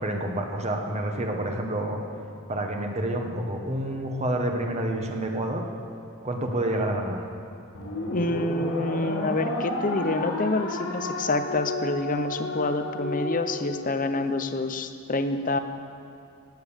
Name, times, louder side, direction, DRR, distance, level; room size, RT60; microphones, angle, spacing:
voice 1, 0.0-2.0 2.5-5.6 6.2-7.2, right 1 dB, 30° right, 2 dB, 1.4 m, -28 dB
sound 1, 7.7-14.3, left 1 dB, 85° left, 3.7 m, -32 dB
voice 2, 8.1-15.6, left 2 dB, 40° left, 9 dB, 0.8 m, -27 dB
17.0 x 9.4 x 7.3 m, 2.4 s
head